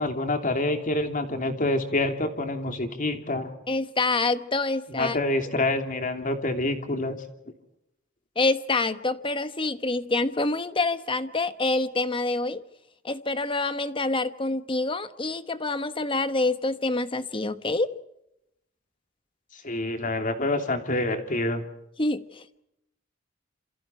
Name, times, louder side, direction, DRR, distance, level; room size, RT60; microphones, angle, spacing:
voice 1, 0.0-3.5 4.9-7.2 19.5-21.6, left 2 dB, 40° left, 6 dB, 3.0 m, -27 dB
voice 2, 3.7-5.2 8.3-12.6 13.0-17.9 22.0-22.4, left 2 dB, 25° left, 11 dB, 1.2 m, -26 dB
28.0 x 28.0 x 4.6 m, 0.82 s
head